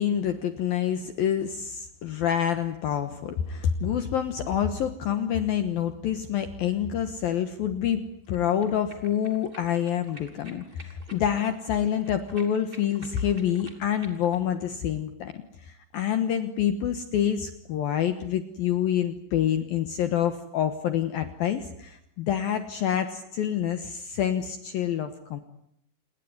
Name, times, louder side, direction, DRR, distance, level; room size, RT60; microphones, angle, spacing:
voice 1, 0.0-25.4, left 9 dB, 65° left, 9 dB, 2.5 m, -27 dB
sound 1, 8.2-14.4, right 1 dB, 15° right, 2.4 m, -51 dB
28.0 x 21.5 x 9.6 m, 0.75 s
omnidirectional pair, 5.5 m